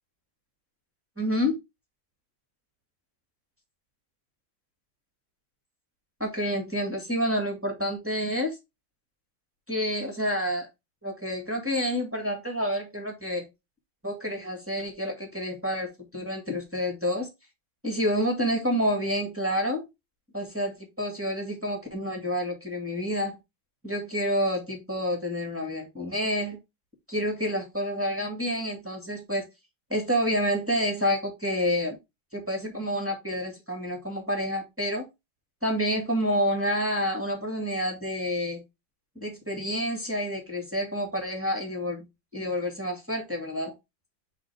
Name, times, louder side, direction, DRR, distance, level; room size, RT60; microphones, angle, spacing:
voice 1, 1.2-1.5 6.2-8.6 9.7-10.7 11.0-13.4 14.0-17.3 17.8-19.9 20.3-23.4 23.8-26.6 27.1-29.4 29.9-32.0 32.3-35.0 35.6-38.6 39.1-42.0 42.3-43.7, equal, 5° right, 0 dB, 1.7 m, -28 dB
9.4 x 3.3 x 3.4 m, 0.22 s
omnidirectional pair, 2.3 m